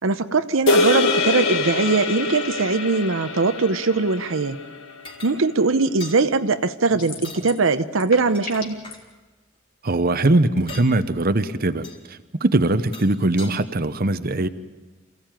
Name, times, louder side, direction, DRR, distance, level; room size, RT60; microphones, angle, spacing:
voice 1, 0.0-4.6 5.2-8.8, right 3 dB, 70° right, 10 dB, 0.8 m, -21 dB
sound 1, 0.7-5.1, left 3 dB, 65° left, 2.0 m, -24 dB
sound 2, 5.0-5.4 6.0-6.2 7.1-7.4 8.1-9.0 10.6-10.9 11.8-12.0 12.7-13.5, left 4 dB, 25° left, 3.7 m, -41 dB
sound 3, 7.0-7.7 7.9-8.9, left 5 dB, 45° left, 2.8 m, -36 dB
voice 2, 9.8-14.5, right 2 dB, 45° right, 11 dB, 0.9 m, -21 dB
27.5 x 16.5 x 9.1 m, 1.2 s
head